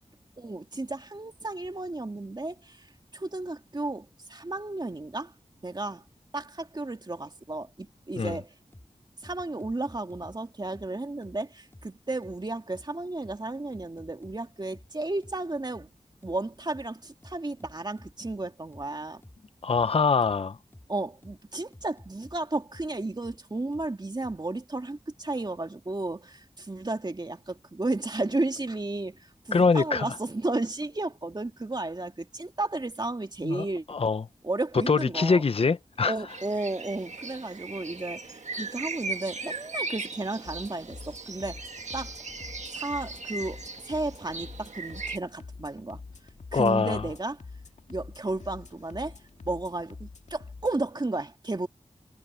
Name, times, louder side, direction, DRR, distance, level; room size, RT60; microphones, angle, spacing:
voice 1, 0.4-2.9 3.1-5.3 5.6-6.0 6.3-8.5 9.2-15.9 16.2-19.2 20.9-33.8 34.4-35.4 36.0-41.6 41.9-42.2 42.7-46.0 46.5-47.4 47.9-49.2 49.4-51.7, right 2 dB, 35° right, 2.2 m, -33 dB
sound 1, 8.7-8.9 9.2-10.4 10.7-10.9 11.2-11.4 11.7-11.9 12.2-12.4 12.7-12.9 13.2-13.4 13.7-14.4 14.7-14.9 15.2-15.4 15.7-15.9 16.2-16.4 16.7-16.9 17.2-18.4 18.7-18.9 19.2-19.4 19.7-19.9 20.2-20.4 20.7-20.9 21.2-21.4 21.7-22.4 22.7-22.9 23.2-23.4 23.7-23.9 24.2-24.4, left 1 dB, 20° left, 2.7 m, -50 dB
voice 2, 19.6-20.6 29.5-30.1 33.4-34.2 34.9-36.1 46.5-47.0, left 4 dB, 50° left, 0.6 m, -24 dB
sound 2, 36.3-45.2, right 3 dB, 70° right, 1.7 m, -38 dB
sound 3, 40.4-50.9, left 4 dB, 70° left, 1.9 m, -46 dB
wide cardioid pair, 60°, 12 cm